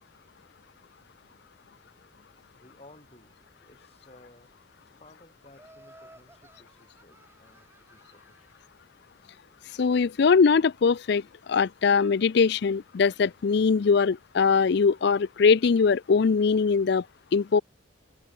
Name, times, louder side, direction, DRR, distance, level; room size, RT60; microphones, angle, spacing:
voice 1, 2.5-3.4 3.6-4.5 4.8-8.5, left 2 dB, 30° left, 4.2 m, -56 dB
Laughter, 5.5-8.7, right 1 dB, 10° right, 7.0 m, -56 dB
voice 2, 9.8-11.2 11.5-17.0 17.3-17.6, left 5 dB, 55° left, 0.4 m, -21 dB
head